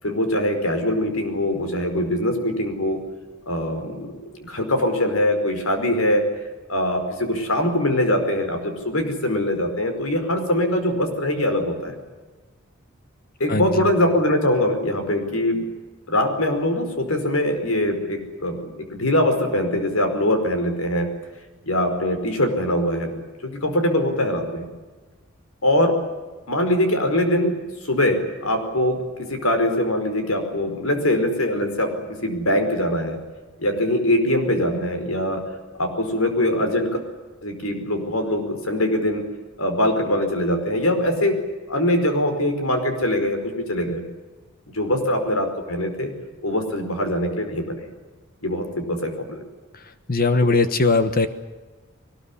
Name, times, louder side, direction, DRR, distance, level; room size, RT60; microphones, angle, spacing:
voice 1, 0.0-3.0 3.5-6.2 6.7-12.0 13.4-15.7 16.1-21.1 21.6-24.6 25.6-26.0 26.5-27.6 27.9-29.0 29.3-33.2 33.6-35.4 35.8-37.0 37.4-39.2 39.6-41.4 41.7-44.0 44.7-46.1 46.4-47.9 48.4-49.4 50.4-50.5, left 1 dB, 85° left, 6 dB, 5.0 m, -22 dB
voice 2, 50.1-51.3, left 3 dB, 45° left, 10 dB, 1.3 m, -19 dB
22.0 x 20.0 x 9.9 m, 1.3 s
head